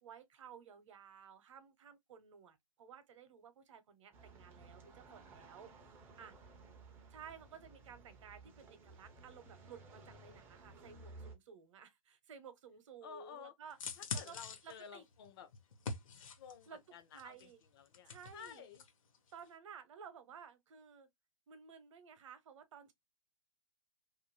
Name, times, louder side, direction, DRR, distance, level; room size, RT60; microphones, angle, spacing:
voice 1, 0.0-5.7 6.2-6.3 7.1-13.8 14.1-14.4 14.6-15.0 16.7-16.8 17.1-17.6 18.1-18.6 19.3-21.1 21.5-22.9, right 7 dB, 60° right, 0.8 m, -55 dB
sound 1, 4.1-11.3, right 3 dB, 10° right, 0.4 m, -57 dB
voice 2, 6.2-7.2 13.0-13.5 14.0-15.5 16.4-18.9, left 8 dB, 45° left, 0.5 m, -54 dB
sound 2, 13.7-16.7 17.2-18.9 19.1-19.3, left 4 dB, 70° left, 0.8 m, -44 dB
2.5 x 2.3 x 2.9 m
hypercardioid pair, 155°, 18 cm